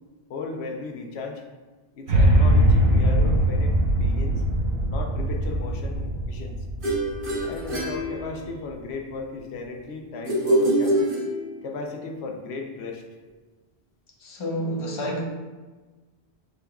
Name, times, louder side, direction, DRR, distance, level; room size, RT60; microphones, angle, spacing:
voice 1, 0.3-1.4 2.0-4.4 4.9-6.6 7.4-11.1 11.6-13.0, left 4 dB, 85° left, 2 dB, 0.9 m, -35 dB
sound 1, 2.1-8.3, right 1 dB, 85° right, 1.1 m, -21 dB
sound 2, 6.8-8.8 10.3-11.8, right 1 dB, 55° right, 1.2 m, -25 dB
voice 2, 14.2-15.2, equal, 30° left, -1 dB, 0.7 m, -29 dB
6.7 x 3.4 x 2.3 m, 1.3 s
omnidirectional pair, 1.1 m